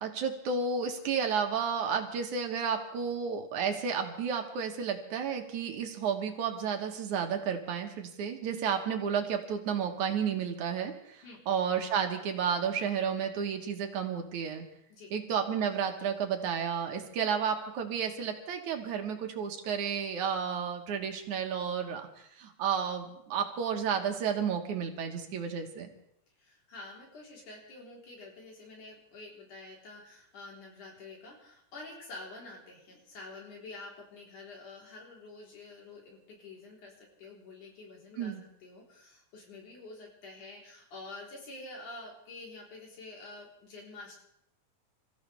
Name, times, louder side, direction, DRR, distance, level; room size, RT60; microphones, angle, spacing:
voice 1, 0.0-14.6 15.1-25.9 38.2-38.4, right 7 dB, 70° right, 4 dB, 2.8 m, -32 dB
voice 2, 26.4-38.3 38.6-44.2, left 2 dB, 75° left, -2 dB, 5.4 m, -48 dB
28.0 x 14.5 x 3.5 m, 0.76 s
omnidirectional pair, 3.6 m